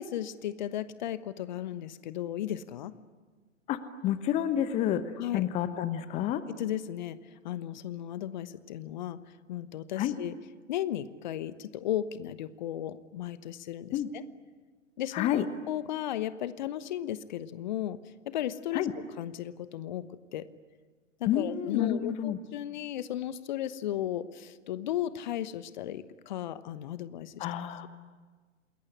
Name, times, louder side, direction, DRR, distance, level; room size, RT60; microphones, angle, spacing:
voice 1, 0.0-2.9 5.2-5.4 6.5-7.2 7.4-9.2 9.5-10.3 10.7-14.2 15.0-15.3 15.7-18.0 18.3-18.8 19.2-20.1 20.3-20.5 21.2-27.5, left 11 dB, 40° left, 14 dB, 1.1 m, -35 dB
voice 2, 3.7-5.0 5.3-6.4 10.0-10.1 13.9-14.1 15.1-15.5 18.7-18.9 21.3-22.4 27.4-27.9, left 11 dB, 15° left, 13 dB, 1.0 m, -29 dB
28.0 x 21.0 x 10.0 m, 1.4 s
figure-of-eight pair, 115°, 37 cm